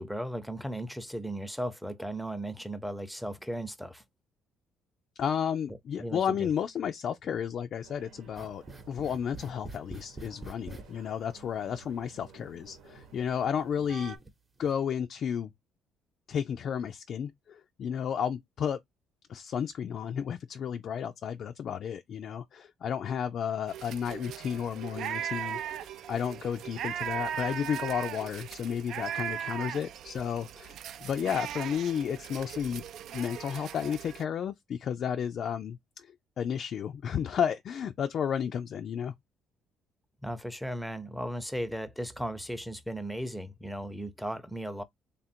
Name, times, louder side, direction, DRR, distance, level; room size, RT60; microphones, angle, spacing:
voice 1, 0.0-4.0 6.0-6.5 40.2-44.8, equal, ahead, 0.6 m, -36 dB
voice 2, 5.2-14.2 14.6-15.5 16.3-18.8 19.3-32.8 33.1-39.1, left 8 dB, 55° left, 0.3 m, -32 dB
sound 1, 7.8-14.2, right 5 dB, 85° right, 1.1 m, -52 dB
sound 2, 8.3-10.8 11.9-12.0 12.7-12.8 13.6-14.3 14.6-14.7, right 3 dB, 25° right, 0.9 m, -45 dB
sound 3, 23.7-34.2, right 9 dB, 70° right, 0.3 m, -38 dB
3.4 x 2.5 x 4.2 m
cardioid pair, 115°, 0 cm